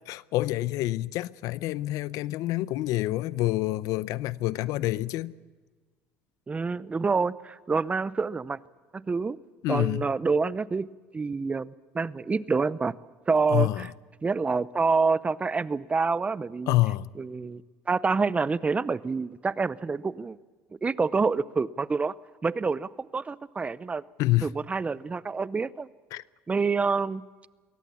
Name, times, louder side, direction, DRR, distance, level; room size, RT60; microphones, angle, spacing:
voice 1, 0.1-5.3 9.6-10.1 13.5-13.9 16.7-17.1 24.2-24.5 26.1-26.2, left 17 dB, 70° left, 0.6 m, -27 dB
voice 2, 6.5-8.6 8.9-9.4 9.7-10.9 11.1-12.9 13.3-13.9 14.2-16.7 17.2-17.6 17.9-20.4 20.8-22.1 22.4-24.0 24.4-25.9 26.5-27.2, right 4 dB, 20° right, 0.7 m, -27 dB
23.0 x 18.0 x 7.1 m
supercardioid pair, 95°, 6 cm